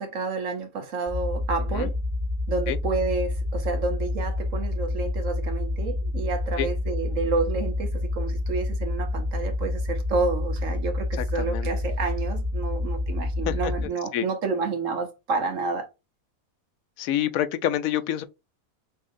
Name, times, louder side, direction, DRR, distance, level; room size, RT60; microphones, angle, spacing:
voice 1, 0.0-1.9 2.5-15.9, right 4 dB, 65° right, 1.4 m, -29 dB
sound 1, 1.1-13.9, left 2 dB, 30° right, 1.5 m, -28 dB
voice 2, 11.2-11.7 13.5-13.7 14.1-14.3 17.0-18.3, left 11 dB, 75° left, 1.0 m, -27 dB
5.6 x 2.8 x 2.6 m
omnidirectional pair, 1.5 m